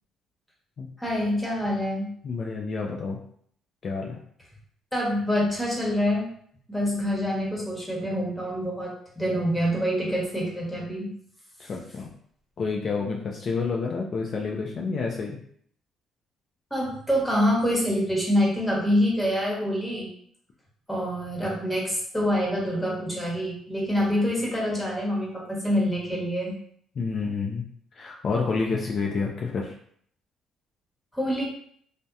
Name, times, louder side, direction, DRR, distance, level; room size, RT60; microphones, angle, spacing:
voice 1, 1.0-2.1 4.9-6.3 6.7-11.1 16.7-20.1 20.9-26.5 31.1-31.4, equal, 10° left, -4 dB, 0.9 m, -26 dB
voice 2, 2.2-3.2 3.8-4.2 11.6-12.1 12.6-15.4 27.0-27.6 27.9-29.7, left 4 dB, 50° left, -1 dB, 0.3 m, -29 dB
2.7 x 2.0 x 2.3 m, 0.63 s
cardioid pair, 90°, 0 cm